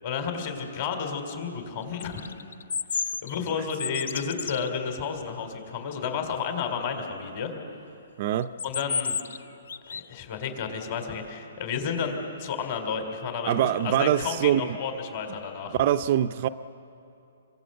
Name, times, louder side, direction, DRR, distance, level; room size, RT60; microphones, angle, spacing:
voice 1, 0.0-2.2 2.9-7.5 8.6-9.2 9.9-15.8, left 6 dB, 35° left, 3.8 m, -32 dB
sound 1, 2.0-4.7 8.4-9.4 9.7-10.1, left 6 dB, 70° left, 0.8 m, -31 dB
voice 2, 8.2-8.5 13.5-14.8 15.8-16.5, right 11 dB, 35° right, 0.5 m, -23 dB
28.0 x 23.0 x 7.9 m
hypercardioid pair, 165°, 0 cm